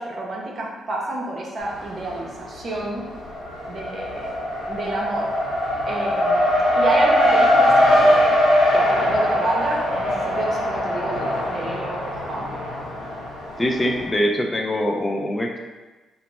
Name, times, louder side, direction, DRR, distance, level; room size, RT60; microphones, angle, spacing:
voice 1, 0.0-3.0 3.7-4.4 4.7-5.3 5.9-6.5 6.8-8.4 8.7-12.5, right 2 dB, 50° right, -3 dB, 0.7 m, -29 dB
Race car auto racing, 1.6-2.4 2.7-14.0, equal, 80° left, 0.7 m, -21 dB
voice 2, 13.6-15.6, equal, 25° left, 1 dB, 0.4 m, -23 dB
2.8 x 2.0 x 3.3 m, 1.2 s
hypercardioid pair, 40°, 0 cm